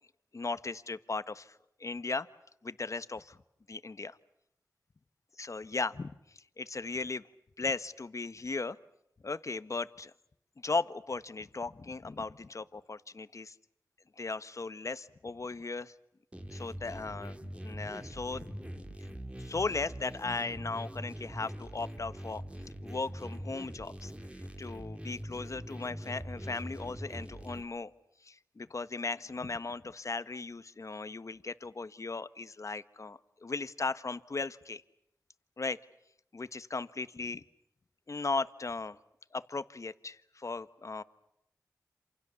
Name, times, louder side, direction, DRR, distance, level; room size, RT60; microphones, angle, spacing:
voice 1, 0.3-2.3 2.6-3.4 3.7-4.2 5.4-7.2 7.6-8.8 9.2-10.1 10.6-13.5 14.2-15.9 16.5-17.4 17.6-18.6 19.4-22.4 22.8-24.1 24.6-27.9 28.2-34.8 35.6-35.8 36.3-37.4 38.1-39.0 39.3-41.0, left 3 dB, 55° left, 13 dB, 1.3 m, -37 dB
sound 1, 16.3-27.6, equal, 20° right, 3.2 m, -43 dB
28.0 x 27.5 x 7.1 m, 0.79 s
cardioid pair, 50°, 7 cm